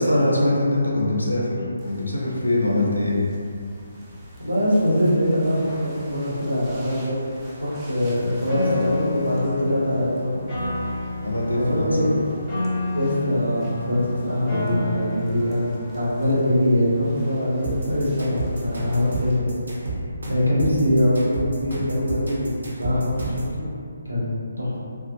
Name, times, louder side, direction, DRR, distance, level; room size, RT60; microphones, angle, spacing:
voice 1, 0.0-3.2 11.2-12.1, left 1 dB, 80° left, -4 dB, 0.4 m, -22 dB
sound 1, 1.8-19.4, equal, 15° right, 0.3 m, -43 dB
voice 2, 4.4-7.2 7.6-10.4 11.5-12.2 12.9-19.5 20.3-23.6 24.0-24.8, left 1 dB, 90° right, -9 dB, 0.9 m, -23 dB
Piano, 8.5-16.5, left 2 dB, 10° left, 0.8 m, -30 dB
sound 2, 17.6-23.5, right 2 dB, 60° right, 0.7 m, -30 dB
2.4 x 2.0 x 2.7 m, 2.4 s
figure-of-eight pair, 145°, 0 cm